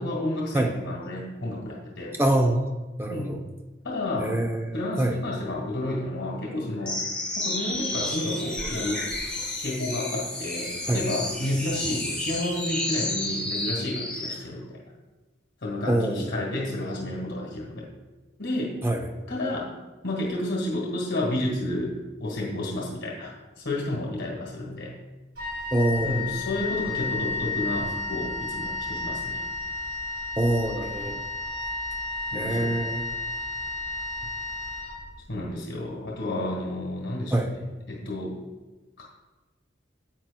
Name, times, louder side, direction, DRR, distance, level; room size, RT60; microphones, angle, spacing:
voice 1, 0.0-2.1 3.1-3.4 3.8-4.3 4.7-7.0 7.4-9.1 9.6-14.8 15.6-17.9 18.4-18.9 19.3-19.7 20.0-25.0 26.0-29.4 32.3-32.7 35.3-37.3 37.9-38.4 39.0-39.1, left 1 dB, 80° left, -4 dB, 1.5 m, -31 dB
voice 2, 2.2-2.6 3.0-3.4 4.2-5.2 10.9-11.0 15.9-16.3 18.8-19.0 25.7-26.3 30.4-31.2 32.3-33.0 37.3-37.5, right 1 dB, 10° right, 3 dB, 0.6 m, -25 dB
sound 1, 6.8-14.4, left 1 dB, 5° left, 1.3 m, -31 dB
Wind instrument woodwind instrument, 25.3-35.4, left 3 dB, 55° right, 2.6 m, -32 dB
10.0 x 7.8 x 2.2 m, 1.2 s
head